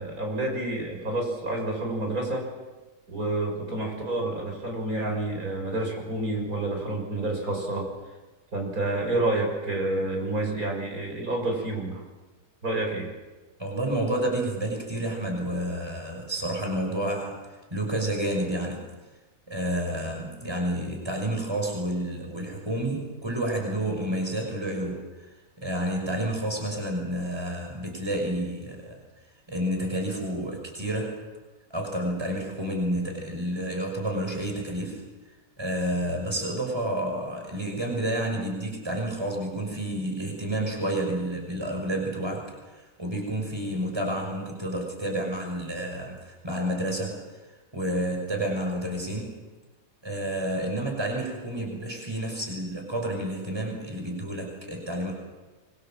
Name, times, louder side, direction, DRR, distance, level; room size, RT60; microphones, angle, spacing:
voice 1, 0.0-2.5 3.1-7.9 8.5-12.0 12.6-13.1, right 2 dB, 60° right, 1 dB, 6.6 m, -29 dB
voice 2, 13.6-17.4 17.7-18.8 19.5-25.3 25.6-29.0 29.5-31.1 31.7-35.0 35.6-47.2 47.7-49.3 50.0-55.1, right 1 dB, 15° right, 2 dB, 6.0 m, -30 dB
24.5 x 24.5 x 7.6 m, 1.2 s
omnidirectional pair, 1.7 m